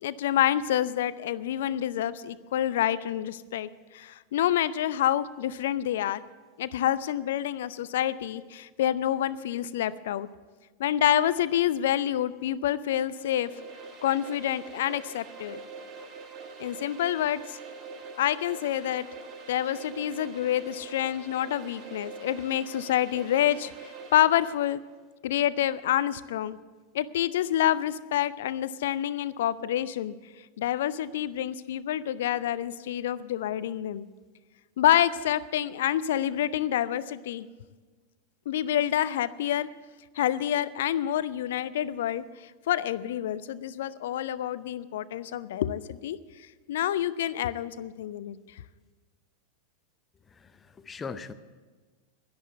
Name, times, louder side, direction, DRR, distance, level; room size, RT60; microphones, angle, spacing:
voice 1, 0.0-6.2 6.6-10.3 10.8-13.5 14.0-15.6 16.6-17.6 18.2-19.1 19.5-24.8 25.2-26.6 26.9-30.1 30.6-34.1 34.8-37.5 38.5-39.7 40.2-46.2 46.7-48.4, left 11 dB, 55° left, 17 dB, 0.5 m, -27 dB
sound 1, 13.0-24.7, right 5 dB, 30° right, 1.6 m, -44 dB
voice 2, 50.4-51.3, left 5 dB, 15° left, 13 dB, 0.7 m, -40 dB
11.0 x 11.0 x 8.1 m, 1.3 s
figure-of-eight pair, 90°, 0 cm